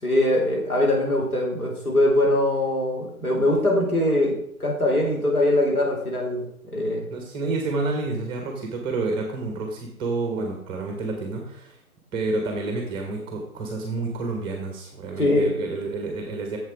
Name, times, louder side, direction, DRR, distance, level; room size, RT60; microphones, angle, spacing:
voice 1, 0.0-7.0 15.2-15.5, left 1 dB, 80° left, -2 dB, 4.1 m, -22 dB
voice 2, 7.1-11.8 12.1-16.6, right 3 dB, 10° right, 2 dB, 1.0 m, -29 dB
7.7 x 7.1 x 4.7 m, 0.69 s
figure-of-eight pair, 135°, 44 cm